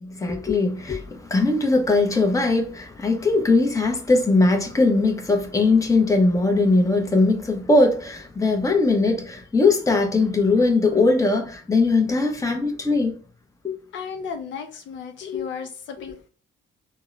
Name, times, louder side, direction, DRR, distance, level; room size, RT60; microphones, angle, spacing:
voice 1, 0.0-13.2 13.6-13.8 15.2-15.5, left 3 dB, 15° left, 0.7 m, -20 dB
voice 2, 13.9-16.3, left 6 dB, 70° left, 0.5 m, -35 dB
3.5 x 2.1 x 2.2 m
cardioid pair, 90°, 20 cm